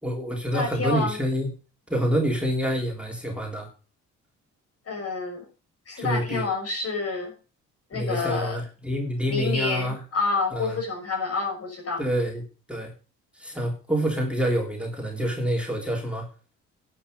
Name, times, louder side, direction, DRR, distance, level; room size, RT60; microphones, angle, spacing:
voice 1, 0.0-1.6 1.9-3.7 6.0-6.5 7.9-10.0 10.5-10.8 12.0-12.4 12.7-12.9 13.3-16.3, equal, 5° right, 0 dB, 3.3 m, -27 dB
voice 2, 0.5-1.2 4.9-5.5 5.9-7.3 7.9-8.6 9.3-12.0, left 4 dB, 50° left, 2 dB, 6.4 m, -28 dB
11.5 x 8.3 x 5.3 m, 0.35 s
cardioid pair, 90°, 30 cm